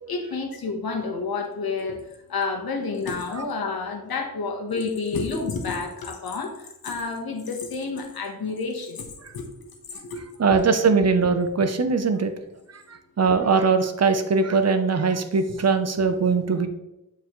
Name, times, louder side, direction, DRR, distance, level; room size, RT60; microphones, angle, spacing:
voice 1, 0.1-2.0 2.3-9.1 9.3-10.4, left 4 dB, 85° left, 2 dB, 1.3 m, -30 dB
voice 2, 10.4-12.3 12.7-16.7, right 4 dB, 45° right, 8 dB, 0.8 m, -21 dB
8.6 x 4.7 x 3.1 m, 0.93 s
wide cardioid pair, 105°, 35 cm